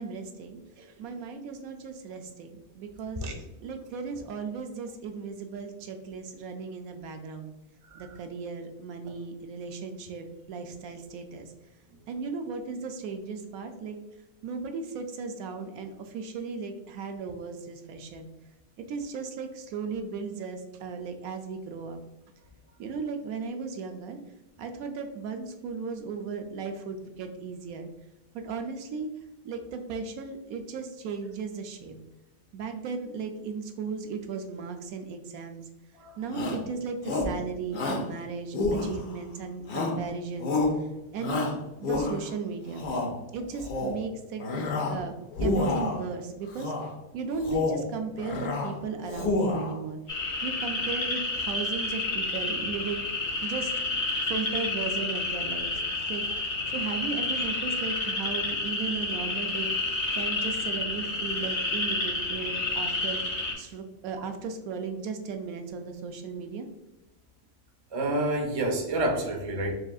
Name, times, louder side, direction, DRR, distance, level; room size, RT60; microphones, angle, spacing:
voice 1, 0.0-3.2 3.6-7.5 7.9-11.5 12.1-14.0 14.4-18.3 18.9-22.0 22.8-24.2 24.6-27.9 28.3-29.1 29.4-32.0 32.5-35.6 36.2-40.9 41.1-41.4 41.8-42.9 43.3-44.6 44.9-46.7 47.1-50.0 50.4-54.0 54.3-55.7 56.1-56.2 56.7-59.7 60.1-63.2 63.6-66.7, right 5 dB, 75° right, 5 dB, 1.0 m, -36 dB
Shout, 36.3-36.7 37.0-37.4 37.7-38.1 38.5-39.2 39.7-40.1 40.4-40.8 41.2-42.3 42.7-43.1 43.5-44.0 44.4-45.0 45.3-46.0 46.5-46.9 47.3-47.9 48.2-48.7 49.0-49.8, left 2 dB, 80° left, 1.3 m, -29 dB
sound 1, 50.1-63.5, left 2 dB, 45° left, 1.8 m, -30 dB
voice 2, 67.9-69.7, right 1 dB, 35° right, 1 dB, 0.6 m, -28 dB
4.9 x 3.6 x 2.3 m, 0.98 s
omnidirectional pair, 1.5 m